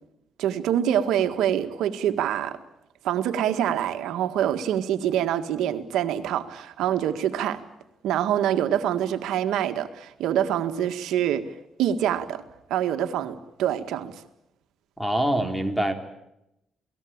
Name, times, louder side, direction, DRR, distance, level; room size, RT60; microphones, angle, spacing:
voice 1, 0.4-2.6 3.0-7.6 8.0-11.5 11.8-12.4 12.7-14.2, right 10 dB, 85° right, 1.8 m, -25 dB
voice 2, 15.0-15.9, right 1 dB, ahead, 3.6 m, -24 dB
28.5 x 19.0 x 8.8 m
cardioid pair, 90°, 0 cm